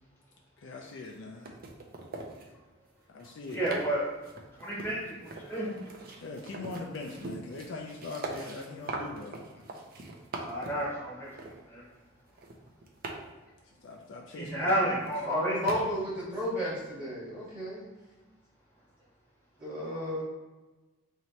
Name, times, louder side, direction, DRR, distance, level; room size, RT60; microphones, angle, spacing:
voice 1, 0.6-1.6 2.4-2.5 3.1-3.6 6.2-9.4 13.6-15.0, left 3 dB, 55° left, 0 dB, 0.4 m, -42 dB
sound 1, 0.9-1.1 1.4-2.5 3.2-3.9 4.2-10.9 11.4-11.5 12.3-13.2 14.7-14.8 15.0-15.3 15.7-15.8, right 2 dB, 45° right, 0.5 m, -41 dB
voice 2, 3.5-4.0 4.6-5.8 10.4-11.3 11.7-11.8 14.4-15.6, right 1 dB, 10° left, -6 dB, 0.8 m, -31 dB
voice 3, 15.2-17.9 19.6-20.2, equal, 20° right, -8 dB, 1.1 m, -32 dB
3.0 x 2.8 x 4.4 m, 1.2 s
head